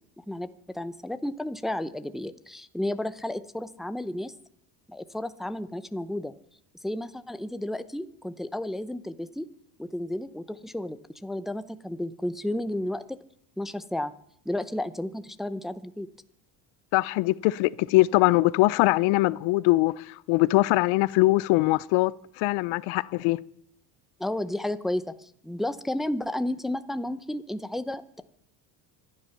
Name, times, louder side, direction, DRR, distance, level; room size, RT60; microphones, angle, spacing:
voice 1, 0.2-0.5 0.7-4.3 4.9-6.3 6.8-9.5 9.8-13.0 13.6-14.1 14.5-16.1 24.2-28.2, left 1 dB, ahead, 0.6 m, -32 dB
voice 2, 16.9-22.1 22.4-23.4, left 20 dB, 75° left, 0.7 m, -22 dB
25.0 x 9.9 x 5.8 m
cardioid pair, 110°, 48 cm